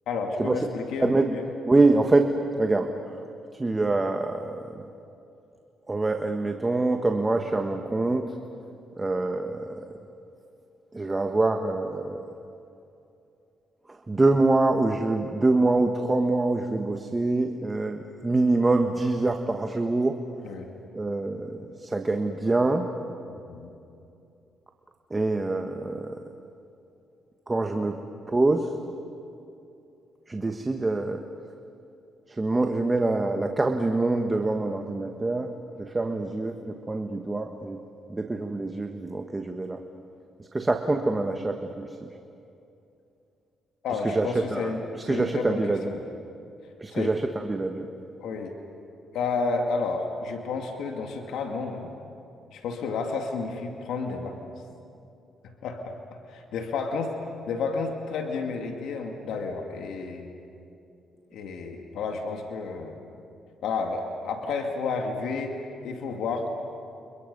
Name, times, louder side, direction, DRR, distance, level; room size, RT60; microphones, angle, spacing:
voice 1, 0.1-1.5 20.4-20.7 23.3-23.7 43.8-46.0 46.9-47.2 48.2-48.6 49.1-51.9 52.5-54.5 55.4-57.2 57.5-60.3 61.3-63.0 63.6-66.5, left 4 dB, 80° left, 3 dB, 2.2 m, -31 dB
voice 2, 1.7-2.9 3.6-4.8 5.9-8.3 9.0-9.8 10.9-12.2 14.1-20.2 20.9-22.9 25.1-26.2 27.5-27.9 28.3-28.7 30.3-31.2 32.4-35.5 35.8-37.8 38.1-39.8 40.5-41.9 44.1-45.9 46.8-47.9, right 2 dB, 20° right, 4 dB, 1.4 m, -25 dB
29.5 x 29.5 x 5.4 m, 2.7 s
cardioid pair, 90°, 0 cm